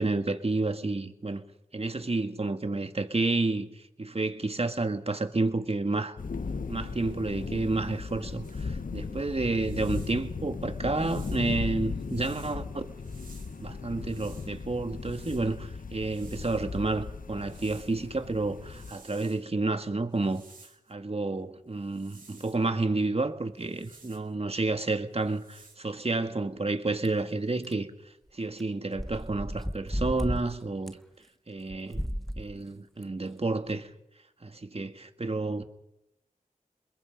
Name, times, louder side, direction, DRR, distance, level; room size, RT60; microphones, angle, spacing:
voice 1, 0.0-1.4 1.7-6.2 6.7-12.9 13.6-20.4 20.9-27.9 28.3-31.0 31.5-33.9 34.4-35.6, right 3 dB, 45° right, 1.8 m, -30 dB
sound 1, 6.2-18.9, left 4 dB, 70° left, 1.0 m, -37 dB
sound 2, 8.4-8.7 9.4-10.2 10.9-12.6 13.0-14.5 14.9-16.8 17.4-18.1 18.4-19.4 20.1-20.9 21.8-22.7 23.5-24.3 25.1-25.8, right 3 dB, 70° right, 5.4 m, -55 dB
sound 3, 27.0-27.1 27.6-27.7 28.6-28.7 28.9-30.4 30.9-31.0 31.7-32.5 33.0-33.1 33.7-33.8, equal, ahead, 1.3 m, -33 dB
28.0 x 21.5 x 5.2 m
cardioid pair, 45°, 14 cm